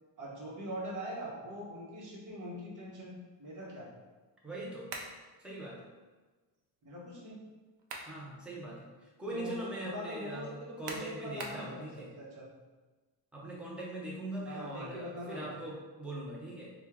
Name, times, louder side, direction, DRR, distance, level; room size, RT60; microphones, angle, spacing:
voice 1, 0.2-3.9 6.8-7.4 9.3-11.9 12.2-12.5 14.5-15.5, equal, 45° right, -4 dB, 1.0 m, -42 dB
voice 2, 4.4-4.9 5.4-5.9 8.1-12.1 13.3-16.7, right 1 dB, ahead, -5 dB, 0.5 m, -41 dB
sound 1, 4.9-5.2 7.5-8.2 8.7-8.8 10.9-11.7, right 3 dB, 75° right, 0.7 m, -42 dB
4.3 x 2.3 x 3.5 m, 1.3 s
cardioid pair, 170°, 43 cm